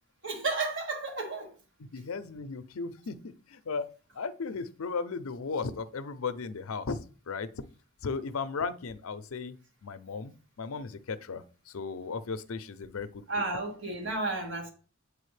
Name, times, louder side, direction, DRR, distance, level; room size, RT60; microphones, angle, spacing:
voice 1, 0.2-1.5 13.3-14.7, right 3 dB, 55° right, 1.7 m, -32 dB
voice 2, 1.9-3.9 4.1-7.5 8.0-9.6 9.8-13.2, left 4 dB, 80° left, 0.6 m, -36 dB
8.4 x 4.9 x 3.3 m
head